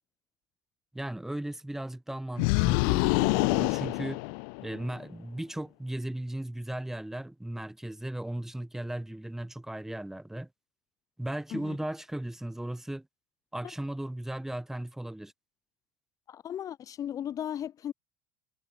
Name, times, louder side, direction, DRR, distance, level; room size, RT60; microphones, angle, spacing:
voice 1, 0.9-4.2 4.6-10.5 11.2-13.1 13.5-15.3, right 1 dB, 5° right, 3.1 m, -36 dB
sound 1, 2.4-4.9, left 37 dB, 65° left, 1.4 m, -26 dB
voice 2, 16.3-17.9, left 10 dB, 30° left, 2.7 m, -36 dB
cardioid pair, 155°, 11 cm